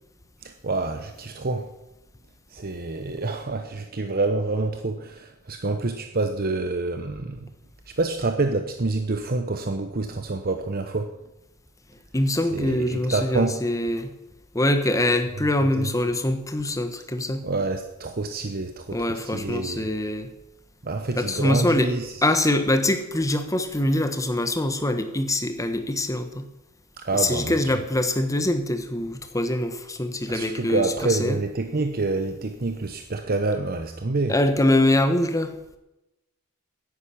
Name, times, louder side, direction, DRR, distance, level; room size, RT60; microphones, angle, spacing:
voice 1, 0.4-1.7 2.5-7.5 7.9-11.2 12.5-13.6 15.8-15.9 17.4-19.9 20.8-22.1 27.0-27.7 30.3-34.4, right 3 dB, 45° right, 6 dB, 0.9 m, -27 dB
voice 2, 12.1-14.1 14.5-17.5 18.9-20.3 21.2-21.9 22.2-26.5 27.1-31.4 34.3-35.5, left 1 dB, 15° left, 7 dB, 1.3 m, -24 dB
11.0 x 9.8 x 8.7 m, 0.94 s
head